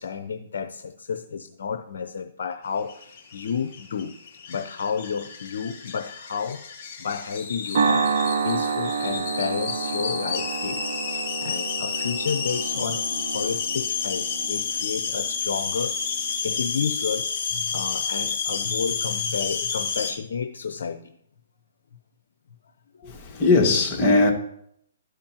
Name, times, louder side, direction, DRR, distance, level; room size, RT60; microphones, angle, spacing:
voice 1, 0.0-4.2 4.5-8.1 8.4-21.2 22.9-23.1, left 6 dB, 70° left, 0.7 m, -31 dB
sound 1, 2.8-20.1, left 6 dB, 40° left, 2.5 m, -30 dB
sound 2, 7.7-16.3, right 5 dB, 65° right, 0.6 m, -29 dB
voice 2, 23.0-24.3, left 3 dB, 25° left, 1.7 m, -19 dB
12.5 x 5.1 x 2.9 m
hypercardioid pair, 140°, 0 cm